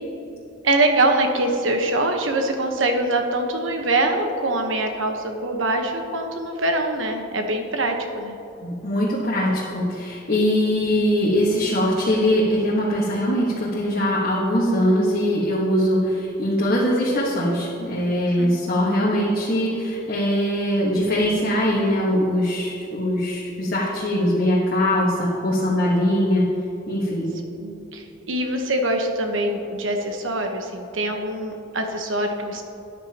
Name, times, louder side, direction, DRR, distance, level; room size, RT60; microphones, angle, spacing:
voice 1, 0.6-8.4 18.4-18.5 27.6-32.6, right 2 dB, 80° right, 4 dB, 1.1 m, -23 dB
voice 2, 8.6-26.5 26.9-27.3, equal, 50° left, -5 dB, 1.4 m, -21 dB
13.5 x 9.6 x 2.9 m, 2.8 s
head